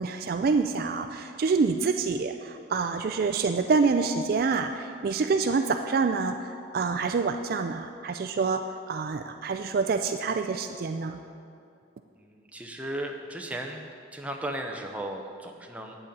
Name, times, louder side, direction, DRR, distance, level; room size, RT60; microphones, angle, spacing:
voice 1, 0.0-8.6 8.9-11.2, right 4 dB, 45° right, 7 dB, 0.3 m, -27 dB
voice 2, 12.2-13.8 14.1-16.0, right 1 dB, 5° right, 2 dB, 0.6 m, -36 dB
8.6 x 8.0 x 5.3 m, 2.3 s
head